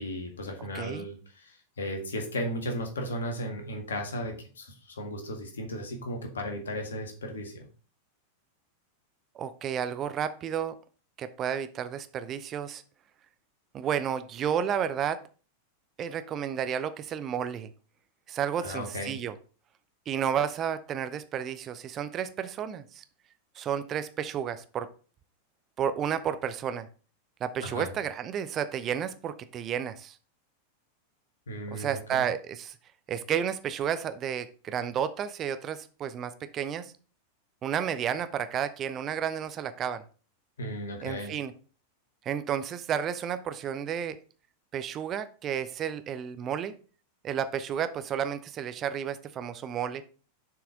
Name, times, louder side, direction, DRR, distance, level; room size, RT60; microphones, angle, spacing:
voice 1, 0.0-7.7 18.6-19.2 27.6-27.9 31.5-32.2 40.6-41.3, equal, 65° left, 3 dB, 1.8 m, -35 dB
voice 2, 0.7-1.1 9.3-10.7 11.2-12.8 13.7-15.2 16.0-17.7 18.3-19.3 20.1-23.0 23.5-24.9 25.8-26.9 27.4-30.2 31.7-32.8 33.1-36.9 37.6-40.0 41.0-41.5 42.3-44.2 44.7-46.7 47.2-50.0, right 8 dB, 30° right, 12 dB, 0.6 m, -31 dB
6.8 x 4.7 x 5.0 m, 0.38 s
figure-of-eight pair, 90°, 0 cm